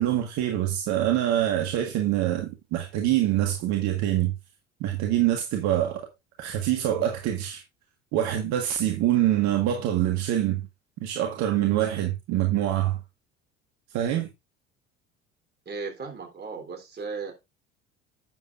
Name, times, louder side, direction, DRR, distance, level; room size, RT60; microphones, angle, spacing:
voice 1, 0.0-4.3 4.8-6.1 6.4-7.6 8.1-10.7 11.0-13.0 13.9-14.3, right 12 dB, 55° right, 1.6 m, -25 dB
voice 2, 15.7-17.3, right 4 dB, 30° right, 3.5 m, -36 dB
11.0 x 7.5 x 2.5 m
hypercardioid pair, 65°, 33 cm